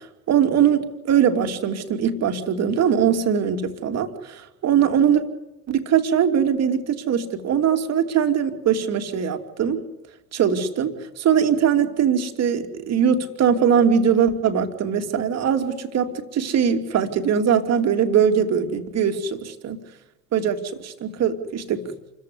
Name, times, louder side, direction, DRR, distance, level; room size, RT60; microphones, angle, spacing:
voice 1, 0.0-5.2 5.7-9.8 10.3-19.8 20.3-21.9, right 8 dB, 40° right, 6 dB, 2.8 m, -21 dB
28.5 x 15.0 x 9.7 m, 0.97 s
figure-of-eight pair, 65°, 40 cm